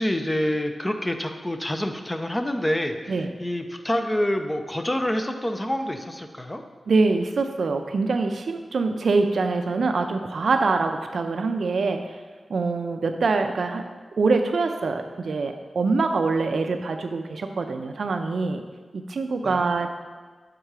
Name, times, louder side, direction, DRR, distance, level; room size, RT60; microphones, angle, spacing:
voice 1, 0.0-6.6 19.4-19.7, left 1 dB, 15° left, 6 dB, 0.4 m, -27 dB
voice 2, 6.9-12.2 12.5-18.6 18.9-19.9, right 3 dB, 70° right, 6 dB, 0.3 m, -24 dB
6.6 x 3.7 x 4.6 m, 1.4 s
wide cardioid pair, 140°, 0 cm